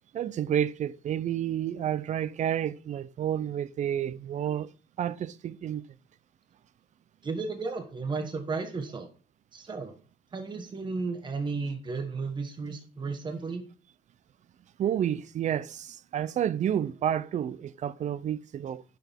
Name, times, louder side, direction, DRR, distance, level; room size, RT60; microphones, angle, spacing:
voice 1, 0.1-4.7 5.0-5.8 14.8-18.8, right 10 dB, 45° right, 0.6 m, -30 dB
voice 2, 7.2-9.1 9.5-9.9 10.3-13.6, right 4 dB, 25° right, 1.3 m, -33 dB
9.8 x 6.9 x 3.6 m
cardioid pair, 110°, 17 cm